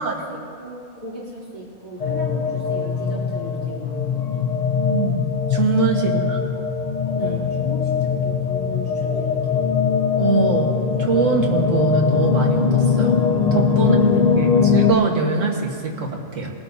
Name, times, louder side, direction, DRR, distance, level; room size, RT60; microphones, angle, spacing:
voice 1, 0.0-4.5 6.1-6.4 7.1-9.7 13.8-14.1, equal, 30° right, -7 dB, 3.5 m, -37 dB
sound 1, 2.0-14.9, left 5 dB, 55° left, 0.4 m, -21 dB
voice 2, 4.7-6.4 7.2-7.3 10.2-10.7 11.0-13.2 13.5-14.0 14.4-16.5, right 4 dB, 65° right, -1 dB, 1.8 m, -23 dB
21.5 x 12.5 x 2.7 m, 2.2 s
omnidirectional pair, 1.4 m